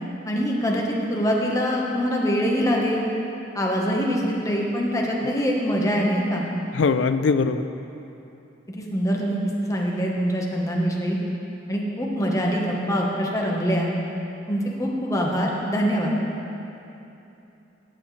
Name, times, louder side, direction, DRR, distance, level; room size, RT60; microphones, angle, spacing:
voice 1, 0.3-0.8 1.1-3.1 3.5-6.4 8.7-11.2 11.7-13.9 14.5-16.1, equal, 20° left, -2 dB, 1.1 m, -24 dB
voice 2, 6.8-7.6, left 4 dB, 85° left, 11 dB, 0.4 m, -21 dB
12.5 x 9.0 x 3.2 m, 2.9 s
head